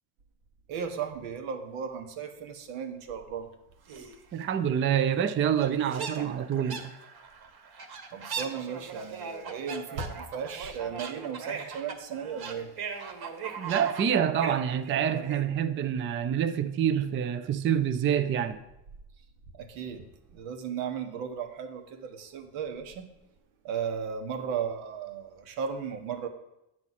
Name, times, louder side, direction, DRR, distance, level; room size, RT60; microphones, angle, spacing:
voice 1, 0.7-3.5 3.9-4.0 8.1-12.7 19.5-23.1 23.6-26.3, right 7 dB, 75° right, 1.2 m, -36 dB
sound 1, 3.9-4.2 4.9-5.0 5.2-5.3 5.6-15.5, right 5 dB, 50° right, 1.4 m, -39 dB
voice 2, 4.3-6.8 13.6-18.6, right 9 dB, 25° right, 0.4 m, -27 dB
9.8 x 6.2 x 4.1 m
supercardioid pair, 90°, 50 cm